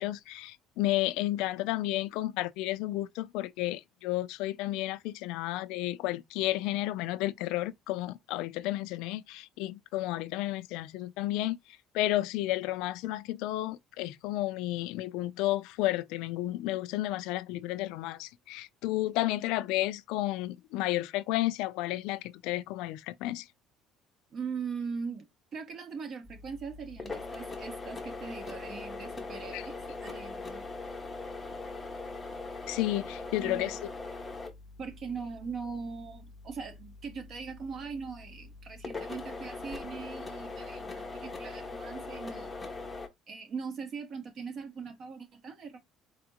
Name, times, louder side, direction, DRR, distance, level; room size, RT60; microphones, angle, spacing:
voice 1, 0.0-11.6 11.9-23.5 29.5-29.6 32.7-33.8, left 16 dB, 75° left, 0.3 m, -32 dB
voice 2, 24.3-30.6 33.4-33.7 34.8-42.6 43.3-45.8, right 5 dB, 30° right, 0.6 m, -40 dB
sound 1, 26.2-43.1, left 3 dB, 15° left, 0.6 m, -41 dB
4.3 x 2.4 x 2.8 m
cardioid pair, 180°, 0 cm